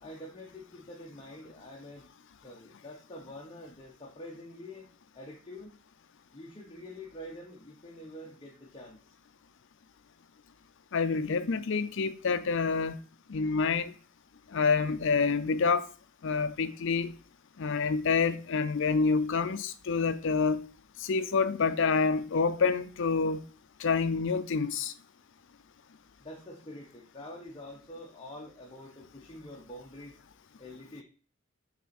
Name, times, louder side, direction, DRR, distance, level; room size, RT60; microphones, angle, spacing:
voice 1, 0.0-2.1 2.4-4.9 5.1-5.8 6.3-9.2 26.2-30.2 30.6-31.0, left 1 dB, 25° left, 1.0 m, -46 dB
voice 2, 10.9-13.0 13.3-13.9 14.5-15.9 16.2-17.1 17.6-20.7 21.0-23.4 23.8-24.9, left 5 dB, 60° left, 0.5 m, -27 dB
5.9 x 4.0 x 4.3 m
head